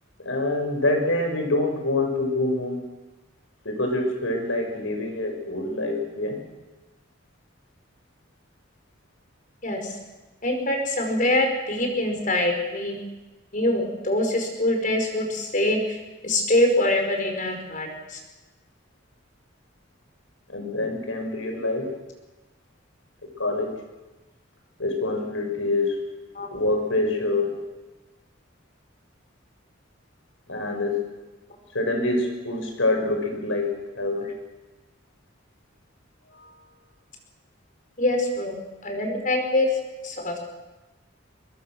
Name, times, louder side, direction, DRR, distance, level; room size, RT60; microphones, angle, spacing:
voice 1, 0.2-2.8 3.6-6.4 20.5-21.9 23.4-23.7 24.8-26.0 26.5-27.5 30.5-31.0 31.7-33.7 34.0-34.3 36.3-36.5, left 2 dB, 85° left, 3 dB, 5.9 m, -25 dB
voice 2, 9.6-10.0 10.4-13.0 13.5-16.0 16.2-18.2 26.3-26.5 38.0-39.7 40.0-40.4, left 1 dB, 40° left, 3 dB, 5.0 m, -24 dB
23.5 x 22.0 x 6.3 m, 1.1 s
head